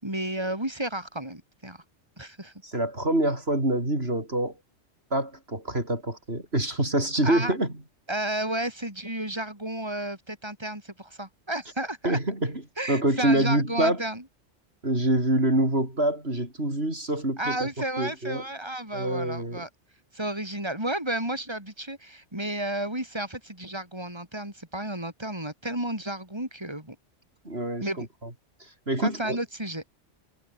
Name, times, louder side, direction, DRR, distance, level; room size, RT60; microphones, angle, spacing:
voice 1, 0.0-1.8 2.2-2.5 7.2-7.5 8.1-12.2 12.8-14.2 17.4-19.7 20.1-27.0 27.8-28.0 29.0-29.9, right 1 dB, 20° right, 6.4 m, -32 dB
voice 2, 2.6-4.6 5.1-7.7 12.0-12.6 12.9-14.0 14.8-17.7 18.0-18.4 18.9-19.6 27.4-28.3 28.6-29.4, right 1 dB, 60° right, 6.7 m, -26 dB
omnidirectional pair, 1.2 m